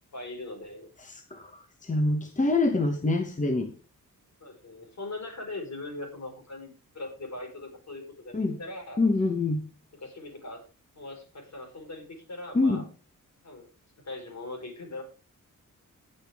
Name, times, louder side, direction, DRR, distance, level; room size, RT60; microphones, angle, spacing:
voice 1, 0.1-0.9 4.4-9.0 10.0-10.6 11.0-12.8 13.4-13.7 14.0-15.0, left 2 dB, 55° left, 3 dB, 4.7 m, -40 dB
voice 2, 1.0-3.7 8.3-8.6 9.0-9.6 12.5-12.8, left 2 dB, 25° left, 6 dB, 1.1 m, -26 dB
19.0 x 6.5 x 3.5 m, 0.33 s
wide cardioid pair, 135°, 33 cm